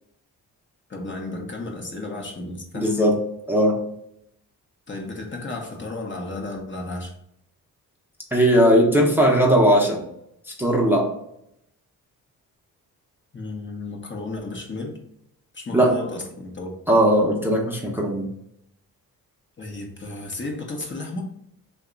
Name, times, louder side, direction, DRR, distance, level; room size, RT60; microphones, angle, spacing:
voice 1, 0.9-3.1 4.9-7.1 13.3-15.0 15.5-16.7 19.6-21.2, left 2 dB, 30° left, 0 dB, 0.8 m, -33 dB
voice 2, 2.7-3.2 3.5-3.8 8.3-10.0 10.6-11.1 15.7-15.9 16.9-18.2, equal, 5° right, -3 dB, 0.7 m, -18 dB
2.8 x 2.2 x 3.7 m, 0.77 s
cardioid pair, 60°, 38 cm